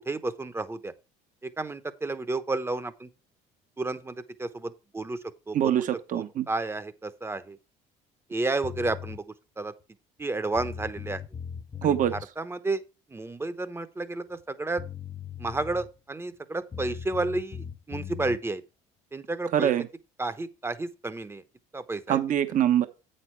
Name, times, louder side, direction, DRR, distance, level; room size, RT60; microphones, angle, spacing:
voice 1, 0.1-0.9 1.4-3.1 3.8-5.2 5.5-5.7 6.1-7.6 8.3-9.2 9.6-9.7 10.2-11.2 11.8-12.0 12.4-12.8 13.1-14.8 15.4-18.6 19.1-19.7 20.2-21.4 21.7-22.2, right 2 dB, 15° right, 0.9 m, -31 dB
voice 2, 5.5-6.5 11.8-12.1 19.5-19.9 22.1-22.9, right 10 dB, 50° right, 1.0 m, -24 dB
sound 1, 8.6-9.2 10.2-10.3 10.5-12.2 14.4-14.5 14.8-16.0 16.7-18.4, left 8 dB, 20° left, 0.5 m, -39 dB
8.3 x 6.6 x 4.5 m
cardioid pair, 105°, 17 cm